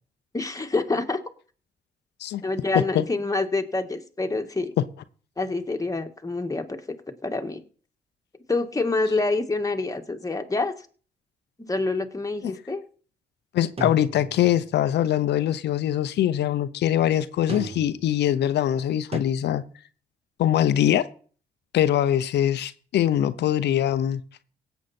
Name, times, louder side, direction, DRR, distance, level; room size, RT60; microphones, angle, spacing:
voice 1, 0.3-1.2 2.4-4.7 5.4-6.8 7.1-7.6 8.5-10.7 11.7-12.8, left 3 dB, 20° left, 1.8 m, -27 dB
voice 2, 2.7-3.0 12.4-12.5 13.5-19.6 20.4-21.1 21.7-24.2, left 11 dB, 75° left, 0.8 m, -23 dB
sound 1, 13.8-14.7 17.5-18.1 19.1-19.2, right 3 dB, 35° right, 1.5 m, -34 dB
17.5 x 8.1 x 4.3 m
supercardioid pair, 65°, 18 cm